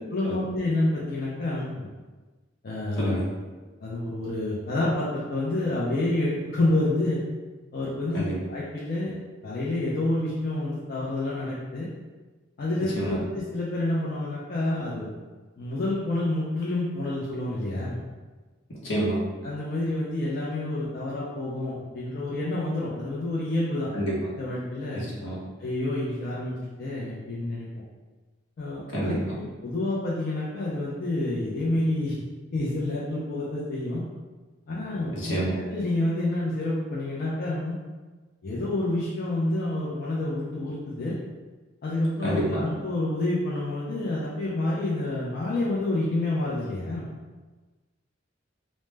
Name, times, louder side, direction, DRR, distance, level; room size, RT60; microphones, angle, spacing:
voice 1, 0.1-1.9 2.6-3.2 3.8-7.2 7.7-9.1 9.4-11.9 12.6-15.1 15.6-18.0 19.4-23.9 24.4-25.0 25.6-26.5 26.8-27.7 28.6-32.1 32.5-34.0 34.7-37.8 38.4-41.2 41.8-47.1, left 2 dB, 50° left, -7 dB, 0.4 m, -28 dB
voice 2, 18.7-19.2 23.9-24.1 24.9-25.4 28.9-29.2 35.1-35.5 42.2-42.6, right 1 dB, 75° left, -6 dB, 0.8 m, -28 dB
2.1 x 2.0 x 3.2 m, 1.3 s
head